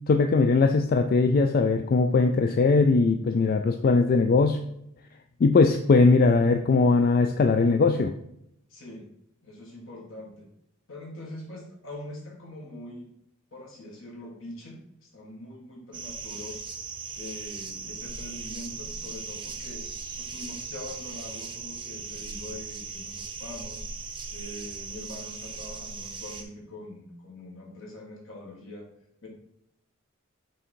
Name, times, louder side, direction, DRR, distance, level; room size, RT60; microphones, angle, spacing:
voice 1, 0.1-4.6 5.4-8.1, left 4 dB, 45° left, 6 dB, 0.3 m, -20 dB
voice 2, 8.7-9.0 9.4-10.5 10.9-13.1 13.5-14.8 15.1-16.6 17.2-19.8 20.2-23.9 24.3-28.8 29.2-29.3, left 1 dB, 70° left, -1 dB, 1.9 m, -43 dB
sound 1, 15.9-26.4, right 4 dB, 20° right, 0.6 m, -38 dB
6.3 x 3.6 x 4.4 m, 0.76 s
head